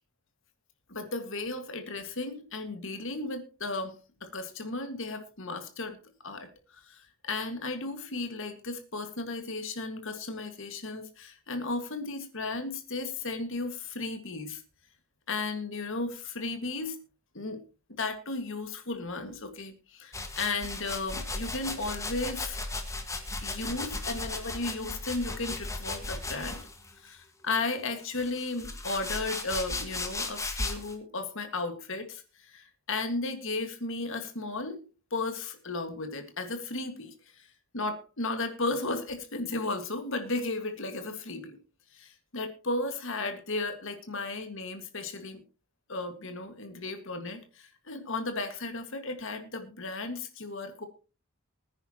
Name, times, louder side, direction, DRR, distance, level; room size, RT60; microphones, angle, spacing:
voice 1, 0.9-6.0 6.2-14.6 15.3-17.0 17.3-17.6 18.0-22.6 23.4-26.6 26.9-34.8 35.1-37.5 37.7-41.6 41.9-45.4 45.9-50.9, left 3 dB, 65° left, 7 dB, 1.9 m, -35 dB
sound 1, 20.1-26.9 27.7-30.9, left 2 dB, 15° left, 1.6 m, -36 dB
20.5 x 9.8 x 2.9 m, 0.33 s
head